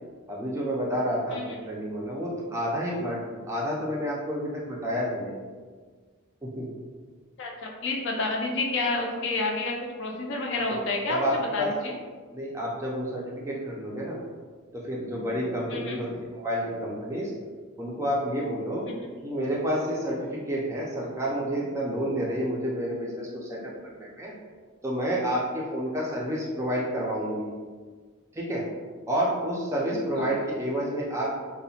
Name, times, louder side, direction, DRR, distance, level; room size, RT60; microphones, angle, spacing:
voice 1, 0.3-5.4 6.4-6.7 10.7-10.8 11.1-11.7 12.3-14.2 14.7-17.3 17.8-18.8 19.2-23.6 24.0-24.3 24.8-27.5 28.3-28.6 29.1-31.4, equal, 15° right, -4 dB, 0.3 m, -29 dB
voice 2, 7.4-11.9 15.7-16.0 19.0-19.1 30.2-30.3, left 2 dB, 55° left, 0 dB, 0.4 m, -29 dB
2.7 x 2.1 x 2.7 m, 1.5 s
head